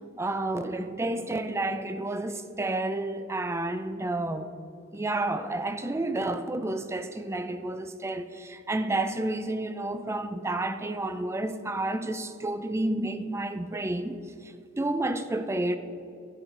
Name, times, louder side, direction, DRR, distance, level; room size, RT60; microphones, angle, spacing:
voice 1, 0.2-4.5 4.9-15.8, right 2 dB, 15° right, 0.4 m, -30 dB
13.0 x 5.7 x 4.5 m
head